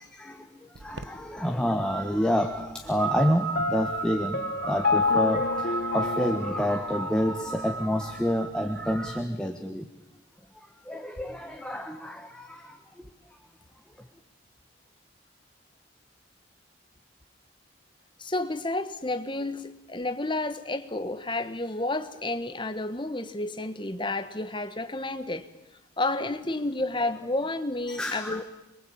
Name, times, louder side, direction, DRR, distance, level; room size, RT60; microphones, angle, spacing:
voice 1, 0.0-9.9 10.5-13.1 27.9-28.4, equal, 5° left, 4 dB, 1.4 m, -29 dB
sound 1, 0.7-9.2, right 6 dB, 70° right, 1.1 m, -36 dB
Piano, 3.6-7.4, left 4 dB, 50° left, 0.9 m, -28 dB
voice 2, 18.2-25.5 26.0-28.4, left 2 dB, 25° left, 10 dB, 1.4 m, -31 dB
26.5 x 22.5 x 8.8 m, 0.93 s
head